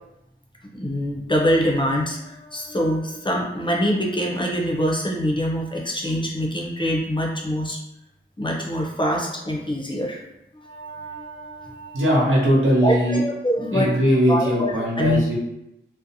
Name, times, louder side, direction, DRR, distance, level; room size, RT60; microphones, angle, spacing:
voice 1, 0.7-7.8 8.4-10.2 10.6-12.1 12.8-14.0 14.3-15.4, equal, 25° left, -1 dB, 0.5 m, -24 dB
voice 2, 11.9-13.2 13.7-15.4, equal, 80° right, -5 dB, 0.8 m, -19 dB
2.6 x 2.0 x 2.6 m, 0.86 s
wide cardioid pair, 75°, 20 cm